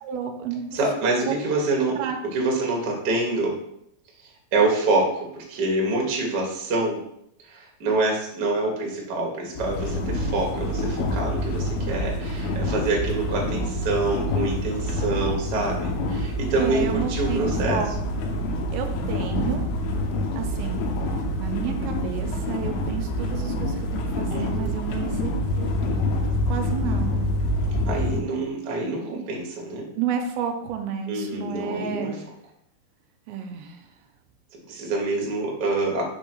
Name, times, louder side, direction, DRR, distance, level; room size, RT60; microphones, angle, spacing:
voice 1, 0.0-0.6 1.3-1.4 1.7-2.2 16.6-18.2 18.7-19.7 20.4-20.8 21.4-26.0 26.5-27.3 30.0-32.1 33.3-33.9, right 7 dB, 85° right, 5 dB, 2.6 m, -31 dB
voice 2, 0.7-2.0 2.3-3.6 4.5-7.0 7.5-17.8 24.3-24.8 27.8-29.9 31.1-32.1 34.7-36.0, right 2 dB, 55° right, -1 dB, 1.2 m, -26 dB
sound 1, 9.6-28.2, left 1 dB, 90° left, 2.8 m, -27 dB
6.1 x 3.6 x 6.0 m, 0.73 s
omnidirectional pair, 4.4 m